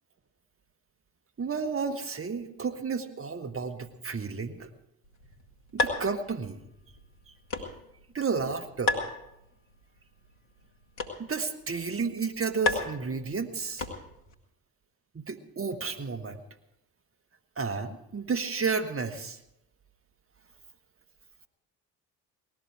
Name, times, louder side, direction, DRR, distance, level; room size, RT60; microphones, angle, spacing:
voice 1, 1.4-4.7 5.7-6.6 7.3-7.7 8.1-9.0 11.2-13.8 15.1-16.4 17.6-19.4, right 5 dB, 30° right, 8 dB, 1.6 m, -32 dB
sound 1, 5.0-14.3, left 3 dB, 75° left, 2.2 m, -36 dB
18.5 x 14.0 x 4.9 m, 0.85 s
hypercardioid pair, 45°, 46 cm